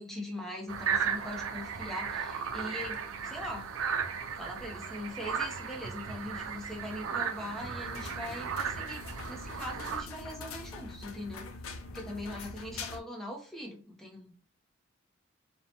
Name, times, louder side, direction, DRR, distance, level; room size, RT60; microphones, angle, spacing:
voice 1, 0.0-3.0 3.2-3.7 4.4-11.5 11.9-14.4, left 1 dB, ahead, 0 dB, 0.6 m, -41 dB
sound 1, 0.7-10.0, right 6 dB, 85° right, 0.4 m, -35 dB
sound 2, 7.8-13.0, left 3 dB, 85° left, 0.4 m, -43 dB
2.8 x 2.1 x 2.7 m, 0.37 s
head